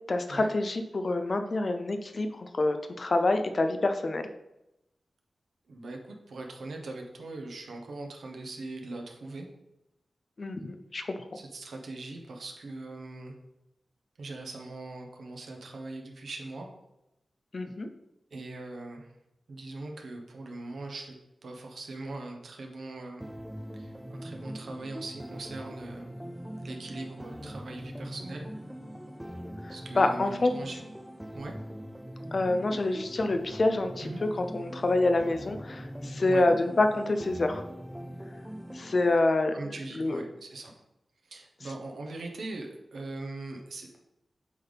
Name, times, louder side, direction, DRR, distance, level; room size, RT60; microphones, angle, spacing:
voice 1, 0.1-4.3 10.4-11.0 17.5-17.9 30.0-30.5 32.3-34.1 34.5-37.6 38.7-39.5 40.0-40.2, left 2 dB, 45° left, 7 dB, 0.5 m, -27 dB
voice 2, 5.7-9.5 11.3-13.4 14.2-16.7 18.3-19.1 19.5-21.2 21.4-23.3 23.7-26.3 26.6-28.5 29.7-30.8 31.3-31.5 34.0-34.2 36.2-36.5 39.5-40.7 41.2-44.0, right 2 dB, 75° right, 2 dB, 1.1 m, -41 dB
sound 1, 23.2-39.2, equal, 5° right, 0.5 m, -42 dB
8.3 x 3.5 x 4.0 m, 0.89 s
wide cardioid pair, 125°, 0 cm